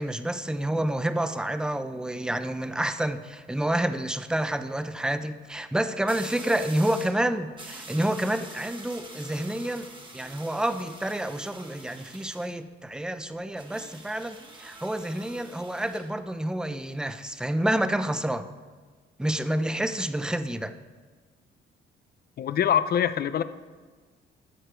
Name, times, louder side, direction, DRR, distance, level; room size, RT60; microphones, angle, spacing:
voice 1, 0.0-9.9 10.1-18.5 19.2-20.7, right 1 dB, 5° right, 11 dB, 0.6 m, -29 dB
sound 1, 6.1-7.2 7.6-12.6 13.6-16.1, right 2 dB, 25° right, 1.5 m, -45 dB
voice 2, 22.4-23.4, left 9 dB, 50° left, 14 dB, 0.5 m, -24 dB
14.0 x 6.6 x 4.5 m, 1.5 s
cardioid pair, 90°, 20 cm